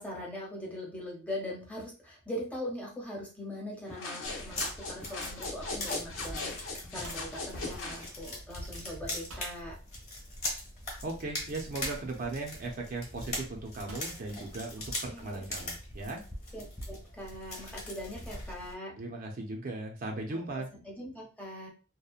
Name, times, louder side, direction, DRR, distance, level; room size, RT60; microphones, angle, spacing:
voice 1, 0.0-9.8 15.1-15.5 16.5-19.0 20.3-21.7, left 1 dB, 5° left, -2 dB, 0.7 m, -41 dB
sound 1, 3.9-8.0, left 3 dB, 70° left, 0.8 m, -39 dB
sound 2, 4.2-18.7, left 1 dB, 30° left, 1.0 m, -41 dB
sound 3, 7.0-8.3 9.3-9.6 10.7-10.8 11.8-12.2 13.9-14.2, right 1 dB, 85° right, 0.9 m, -48 dB
voice 2, 11.0-16.2 19.0-20.7, right 2 dB, 45° right, 1 dB, 0.4 m, -37 dB
2.8 x 2.1 x 2.3 m, 0.35 s
head